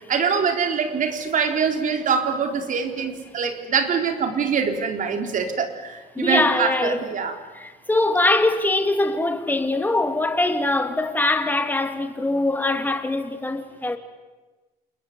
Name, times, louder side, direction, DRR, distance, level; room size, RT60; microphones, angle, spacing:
voice 1, 0.1-7.4, right 6 dB, 50° right, 3.9 m, -24 dB
voice 2, 6.1-7.0 7.5-14.0, left 2 dB, 10° left, 2.8 m, -22 dB
29.0 x 21.0 x 9.6 m
cardioid pair, 110°, 17 cm